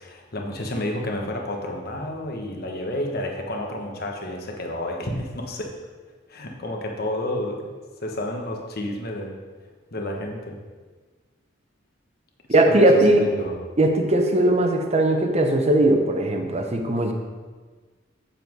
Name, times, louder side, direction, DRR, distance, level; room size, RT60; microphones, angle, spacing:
voice 1, 0.0-5.7 6.3-7.7 8.0-9.3 9.9-10.6 12.7-13.6, left 1 dB, 55° left, 1 dB, 1.3 m, -30 dB
voice 2, 12.5-13.3 13.8-17.1, right 1 dB, 35° right, 4 dB, 0.9 m, -19 dB
7.5 x 7.0 x 4.7 m, 1.4 s
head